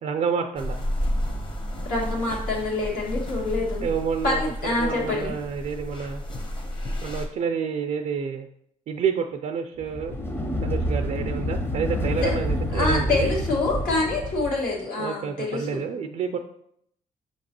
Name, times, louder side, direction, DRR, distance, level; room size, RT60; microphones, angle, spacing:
voice 1, 0.0-0.8 3.8-4.4 4.8-6.2 7.0-8.5 8.9-10.2 10.6-13.3 15.0-16.4, right 6 dB, 55° right, 5 dB, 0.4 m, -28 dB
sound 1, 0.6-7.3, equal, 35° left, 0.9 m, -31 dB
voice 2, 1.9-3.8 4.2-5.3 12.2-12.3 12.7-15.8, left 2 dB, 80° left, -4 dB, 1.8 m, -26 dB
sound 2, 9.8-14.7, equal, 15° left, 0.6 m, -28 dB
6.3 x 2.9 x 2.9 m, 0.70 s
cardioid pair, 85°, 14 cm